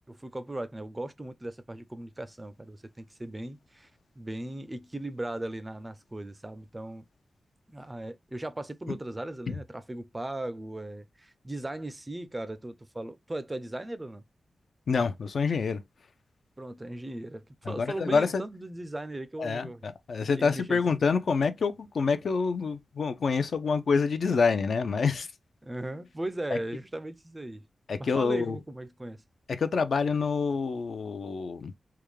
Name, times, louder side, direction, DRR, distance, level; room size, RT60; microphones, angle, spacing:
voice 1, 0.1-3.9 4.2-7.0 7.7-14.2 16.6-19.8 20.2-20.8 25.6-27.7 28.0-29.2, right 1 dB, 15° right, 0.4 m, -38 dB
voice 2, 14.9-15.8 17.7-18.4 19.4-25.3 27.9-28.6 29.6-31.7, left 5 dB, 70° left, 0.5 m, -27 dB
3.5 x 2.2 x 3.1 m
wide cardioid pair, 130°, 0 cm